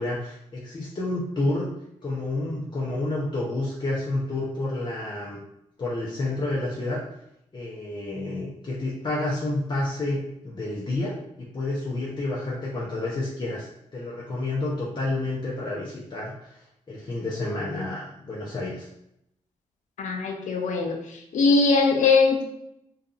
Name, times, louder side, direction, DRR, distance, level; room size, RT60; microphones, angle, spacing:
voice 1, 0.0-1.7 2.0-5.4 5.8-7.0 7.5-10.2 10.4-16.5 16.9-18.9, left 2 dB, 35° left, -5 dB, 0.7 m, -29 dB
voice 2, 20.0-21.0 21.3-22.4, left 4 dB, 70° left, 3 dB, 0.5 m, -20 dB
2.6 x 2.4 x 2.5 m, 0.79 s
cardioid pair, 55°, 13 cm